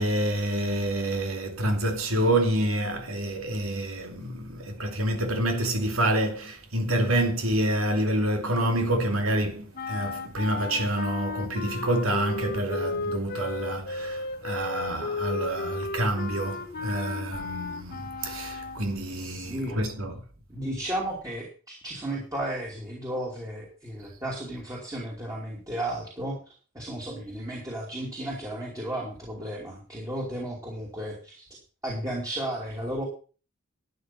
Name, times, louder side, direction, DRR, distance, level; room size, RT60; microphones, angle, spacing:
voice 1, 0.0-20.2, right 1 dB, 85° right, 2.6 m, -27 dB
sound 1, 9.7-18.9, left 3 dB, 50° left, 1.7 m, -34 dB
voice 2, 19.1-19.8 20.5-26.4 26.7-31.4 31.8-33.0, right 1 dB, 15° right, 2.7 m, -34 dB
12.0 x 8.9 x 5.5 m
head